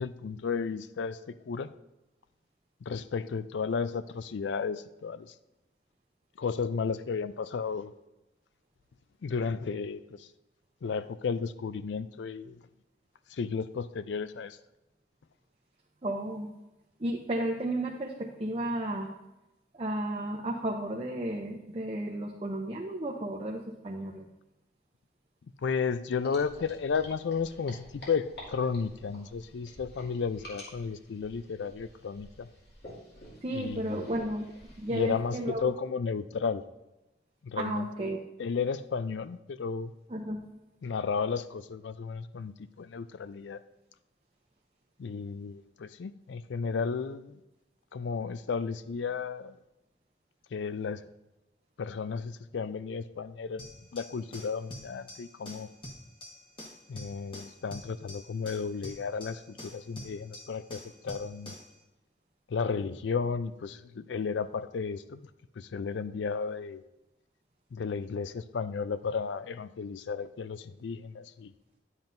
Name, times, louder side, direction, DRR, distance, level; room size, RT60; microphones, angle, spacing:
voice 1, 0.0-1.7 2.8-5.3 6.4-7.9 9.2-10.3 10.8-12.6 13.3-14.6 25.6-32.5 33.5-34.1 34.9-36.6 37.4-39.9 40.8-43.6 45.0-47.4 47.9-49.6 50.5-51.0 51.8-55.7 56.9-61.6 62.5-65.2 65.6-66.8 67.7-71.5, left 5 dB, 80° left, 14 dB, 0.4 m, -33 dB
voice 2, 16.0-16.5 17.0-19.1 19.7-24.2 33.4-34.4 34.8-35.7 37.6-38.2 40.1-40.4, right 1 dB, 30° right, -2 dB, 0.6 m, -33 dB
sound 1, 26.2-35.7, left 1 dB, 60° left, 2.4 m, -50 dB
sound 2, 53.6-61.7, left 1 dB, 30° left, 1.2 m, -47 dB
10.5 x 7.5 x 2.6 m, 0.96 s
head